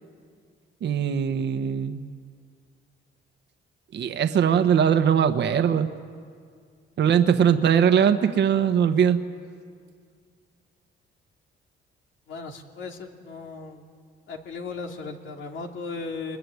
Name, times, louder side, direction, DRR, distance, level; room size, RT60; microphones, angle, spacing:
voice 1, 0.8-2.0 3.9-5.9 7.0-9.2, right 8 dB, 60° right, 8 dB, 1.2 m, -21 dB
voice 2, 12.3-13.9 14.3-16.4, left 4 dB, 75° left, 2 dB, 2.8 m, -36 dB
27.5 x 21.5 x 9.6 m, 2.1 s
cardioid pair, 90°, 20 cm